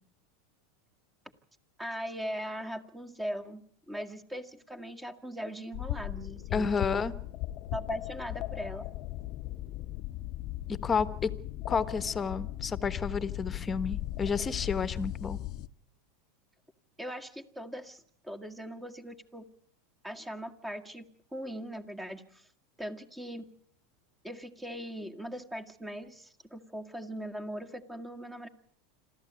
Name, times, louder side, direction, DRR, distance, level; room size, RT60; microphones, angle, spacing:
voice 1, 1.8-3.6 3.9-7.0 7.7-8.8 17.0-19.4 20.0-21.1 21.3-22.5 22.8-23.4 24.2-28.5, equal, 10° right, 6 dB, 1.9 m, -40 dB
sound 1, 5.7-15.7, left 16 dB, 50° left, 0.8 m, -37 dB
voice 2, 6.5-7.1 10.7-11.3 11.7-15.4, left 5 dB, 20° left, 14 dB, 1.3 m, -31 dB
27.0 x 14.0 x 8.4 m, 0.63 s
supercardioid pair, 115°, 0 cm